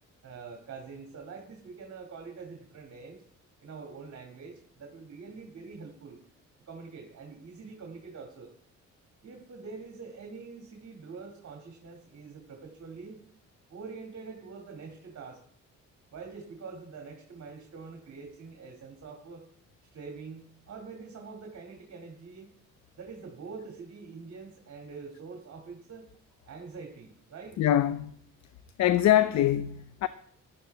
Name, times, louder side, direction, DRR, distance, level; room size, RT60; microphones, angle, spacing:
voice 1, 0.2-3.2 3.6-6.2 6.7-8.5 9.2-13.2 13.7-15.4 16.1-19.5 19.9-22.5 23.0-26.1 26.5-27.6, right 4 dB, 55° right, 2.5 m, -45 dB
voice 2, 27.6-28.1 28.8-30.1, left 12 dB, 65° left, 0.7 m, -23 dB
14.5 x 11.5 x 3.4 m
cardioid pair, 90°, 30 cm